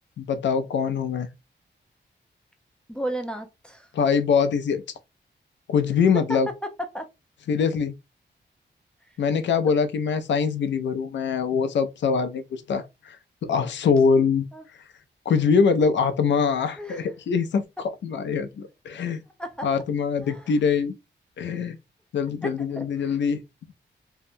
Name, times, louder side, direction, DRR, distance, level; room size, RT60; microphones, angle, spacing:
voice 1, 0.2-1.3 3.9-4.8 5.7-6.5 7.5-7.9 9.2-13.2 13.4-14.5 15.3-19.2 19.6-20.9 21.4-21.8 22.1-23.4, left 6 dB, 75° left, 0.5 m, -23 dB
voice 2, 2.9-3.9 6.3-7.1 14.5-14.6 16.8-17.1 19.4-19.7 20.2-20.6 22.4-23.2, right 1 dB, 5° left, 0.4 m, -34 dB
2.7 x 2.1 x 2.6 m
wide cardioid pair, 175°, 19 cm